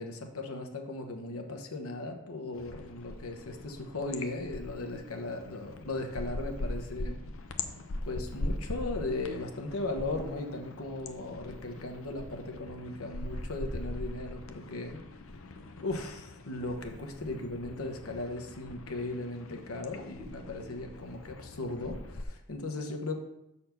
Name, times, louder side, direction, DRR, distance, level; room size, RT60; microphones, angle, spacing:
voice 1, 0.0-7.2 8.0-15.0 15.8-23.1, left 2 dB, 90° left, 3 dB, 1.1 m, -37 dB
sound 1, 2.5-22.2, left 2 dB, 70° left, 0.6 m, -41 dB
6.7 x 4.2 x 5.8 m, 0.87 s
head